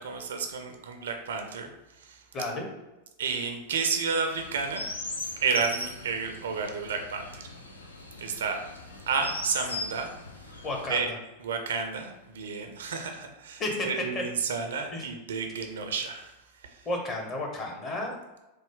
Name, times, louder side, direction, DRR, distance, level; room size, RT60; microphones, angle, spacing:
voice 1, 0.0-1.7 2.0-2.2 3.2-4.9 5.4-7.4 8.2-8.6 9.1-10.1 10.9-11.1 11.4-16.9, right 5 dB, 65° right, 5 dB, 0.4 m, -31 dB
voice 2, 2.3-2.7 10.6-11.1 13.6-14.2 14.9-15.0 16.9-18.2, left 2 dB, 25° left, 1 dB, 0.8 m, -32 dB
Chirp tweet, 4.3-11.0, left 2 dB, 75° left, 0.4 m, -39 dB
3.2 x 2.0 x 3.7 m, 1.0 s
figure-of-eight pair, 90°, 0 cm